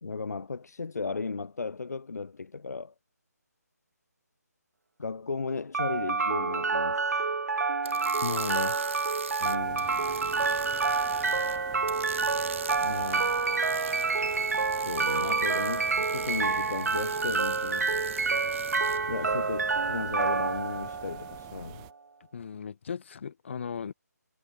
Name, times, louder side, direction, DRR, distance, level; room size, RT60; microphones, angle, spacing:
voice 1, 0.0-2.9 5.0-7.3 9.4-9.9 12.8-13.3 14.8-17.9 19.1-21.9, left 4 dB, 65° left, 1.4 m, -35 dB
sound 1, 5.7-21.8, right 4 dB, 65° right, 2.0 m, -28 dB
sound 2, 7.8-11.6 11.9-19.0, right 6 dB, 45° right, 2.5 m, -43 dB
voice 2, 8.2-8.8 22.3-23.9, left 6 dB, 45° left, 3.9 m, -35 dB
sound 3, 9.4-21.9, right 32 dB, 15° right, 2.0 m, -49 dB
figure-of-eight pair, 160°, 9 cm